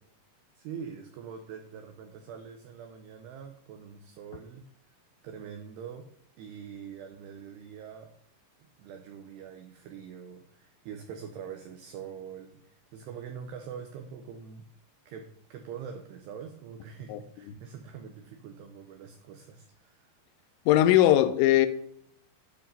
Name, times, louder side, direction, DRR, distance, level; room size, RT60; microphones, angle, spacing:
voice 1, 0.6-5.0 5.2-6.1 6.4-8.1 8.8-14.7 15.1-20.1, right 7 dB, 75° right, 5 dB, 2.6 m, -44 dB
voice 2, 17.1-17.6 20.7-21.7, left 13 dB, 85° left, 10 dB, 2.9 m, -21 dB
10.5 x 4.8 x 5.6 m, 0.66 s
omnidirectional pair, 5.3 m